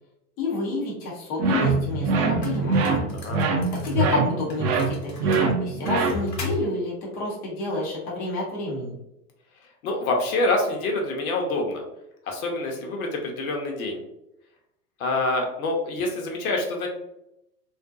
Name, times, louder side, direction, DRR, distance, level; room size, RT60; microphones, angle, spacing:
voice 1, 0.4-3.0 3.8-9.0, left 2 dB, 20° left, -4 dB, 0.3 m, -29 dB
sound 1, 1.4-6.5, right 3 dB, 40° right, 0.5 m, -24 dB
sound 2, 1.8-1.9 2.4-4.1 4.5-6.6, left 3 dB, 80° left, 1.1 m, -41 dB
voice 2, 9.8-11.8 12.3-14.0 15.0-16.9, left 2 dB, 60° left, 1 dB, 0.9 m, -26 dB
2.5 x 2.1 x 2.4 m, 0.84 s
hypercardioid pair, 105°, 49 cm